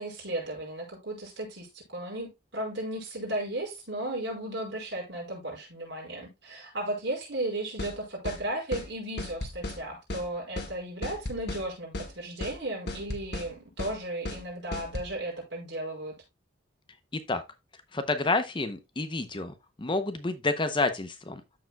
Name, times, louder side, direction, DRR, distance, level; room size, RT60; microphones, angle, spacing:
voice 1, 0.0-16.1, right 1 dB, 60° right, 5.1 m, -35 dB
sound 1, 7.8-8.0 8.3-8.4 8.7-8.9 9.2-9.8 10.1-10.3 10.6-10.7 11.0-11.6 11.9-12.1 12.4-12.6 12.9-13.5 13.8-14.0 14.3-14.4 14.7-15.1, left 2 dB, 55° left, 1.5 m, -35 dB
voice 2, 17.1-17.4 17.9-21.4, left 3 dB, 25° left, 0.6 m, -29 dB
13.5 x 4.8 x 2.3 m
head